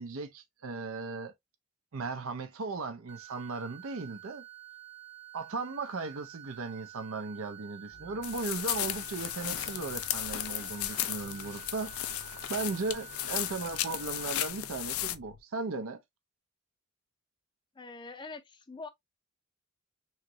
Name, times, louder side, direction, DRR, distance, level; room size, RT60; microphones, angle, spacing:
voice 1, 0.0-1.3 1.9-4.4 5.3-12.1 12.5-16.0, right 3 dB, 70° right, 0.6 m, -37 dB
sound 1, 3.1-14.5, right 13 dB, 30° right, 0.7 m, -50 dB
sound 2, 7.9-15.4, left 2 dB, 55° left, 0.7 m, -55 dB
sound 3, 8.2-15.2, left 12 dB, 85° left, 0.4 m, -35 dB
voice 2, 17.8-18.9, left 3 dB, 20° left, 0.5 m, -44 dB
3.2 x 3.0 x 2.6 m
head